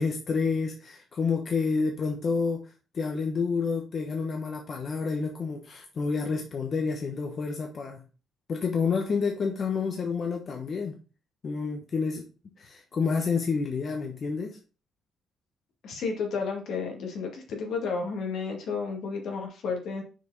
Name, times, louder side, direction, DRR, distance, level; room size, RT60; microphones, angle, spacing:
voice 1, 0.0-2.6 2.9-8.0 8.5-11.0 11.4-12.3 12.6-14.6, left 5 dB, 50° left, 2 dB, 1.1 m, -29 dB
voice 2, 15.8-20.0, left 5 dB, 75° left, 2 dB, 2.1 m, -32 dB
6.2 x 4.8 x 4.0 m, 0.35 s
cardioid pair, 90°, 0 cm